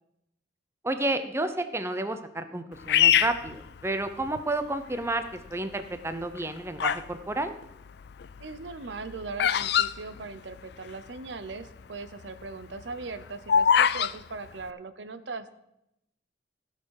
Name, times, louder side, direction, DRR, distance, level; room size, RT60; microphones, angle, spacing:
voice 1, 0.8-7.5, right 2 dB, 15° right, 9 dB, 0.6 m, -31 dB
Bird vocalization bird call bird song, 2.9-4.4 5.0-5.5 6.2-7.1 7.4-10.9 11.2-11.3 11.4-11.8 12.2-14.1, left 9 dB, 65° left, 0.4 m, -24 dB
voice 2, 8.4-15.5, right 3 dB, 80° right, 11 dB, 0.8 m, -39 dB
16.0 x 6.7 x 4.8 m, 0.84 s
head